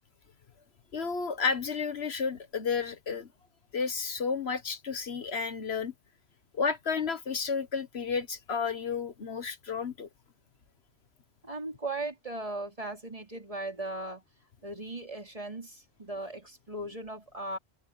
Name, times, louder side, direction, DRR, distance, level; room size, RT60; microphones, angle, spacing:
voice 1, 0.9-3.3 3.7-5.9 6.5-10.1, left 5 dB, 70° left, 1.5 m, -32 dB
voice 2, 11.4-14.2 14.6-17.6, right 2 dB, 30° right, 3.6 m, -38 dB
omnidirectional pair, 1.1 m